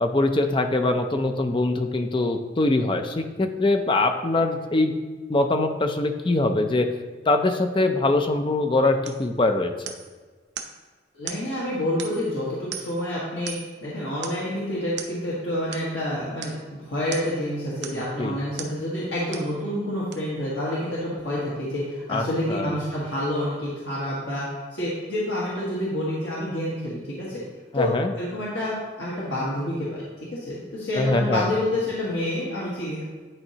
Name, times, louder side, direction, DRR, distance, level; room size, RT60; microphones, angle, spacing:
voice 1, 0.0-4.9 5.3-6.9 7.3-9.7 18.2-18.4 22.1-22.7 27.7-28.1 31.0-31.5, left 2 dB, 25° left, 6 dB, 0.5 m, -23 dB
sound 1, 9.0-9.3 9.9-10.1 10.6-10.8 11.3-11.5 12.0-12.3 12.7-13.1 13.5-13.8 14.2-14.5 15.0-15.2 15.7-15.9 16.4-16.6 17.1-17.4 17.8-18.1 18.6-18.8 19.3-19.5 20.1-20.2, right 7 dB, 70° right, 0.7 m, -37 dB
voice 2, 11.1-24.4 24.7-27.4 27.7-27.9 28.2-29.9 30.2-33.0, left 1 dB, 75° left, -8 dB, 1.5 m, -28 dB
10.5 x 4.4 x 2.9 m, 1.4 s
head